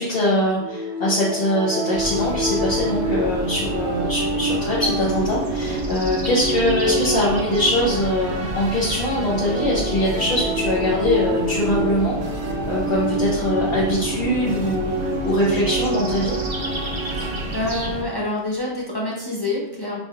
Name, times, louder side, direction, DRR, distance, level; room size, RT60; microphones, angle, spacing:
voice 1, 0.0-12.2 12.7-16.4, left 1 dB, 55° left, -7 dB, 1.1 m, -22 dB
sound 1, 0.6-17.9, right 1 dB, 65° right, 0.9 m, -27 dB
sound 2, 1.9-18.0, right 1 dB, 35° right, 0.5 m, -31 dB
voice 2, 17.0-20.0, left 2 dB, 30° left, -4 dB, 0.5 m, -27 dB
5.6 x 2.8 x 2.4 m, 0.89 s
omnidirectional pair, 1.3 m